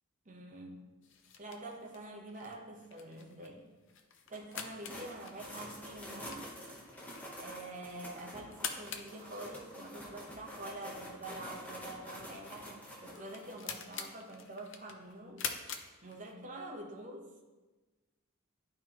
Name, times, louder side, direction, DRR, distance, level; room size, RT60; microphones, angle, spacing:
voice 1, 0.2-0.9 1.4-3.7 4.3-6.5 7.3-15.5 16.0-17.4, right 2 dB, 35° right, -1 dB, 1.0 m, -46 dB
sound 1, 1.0-16.7, left 7 dB, 55° left, 0.6 m, -47 dB
sound 2, 4.3-13.5, equal, 5° left, 0.9 m, -48 dB
11.0 x 4.4 x 3.0 m, 1.2 s
head